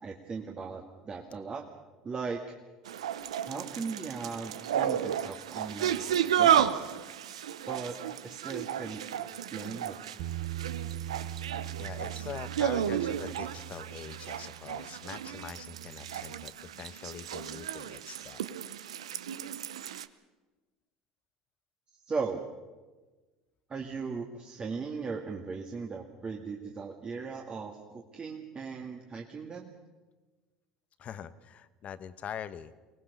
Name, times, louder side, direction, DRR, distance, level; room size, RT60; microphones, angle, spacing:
voice 1, 0.0-1.6 2.0-2.4 3.5-6.0 6.4-6.9 7.7-7.9 8.2-9.0 9.5-10.0 22.1-22.4 23.7-29.7, right 5 dB, 30° right, 1 dB, 2.1 m, -38 dB
sound 1, 2.9-20.1, right 10 dB, 85° right, 0.7 m, -33 dB
Bass guitar, 10.2-16.4, right 11 dB, 65° right, 1.1 m, -41 dB
voice 2, 11.8-18.4 31.0-32.7, left 8 dB, 45° left, 14 dB, 1.1 m, -43 dB
24.0 x 18.5 x 6.8 m, 1.3 s
hypercardioid pair, 75°, 3 cm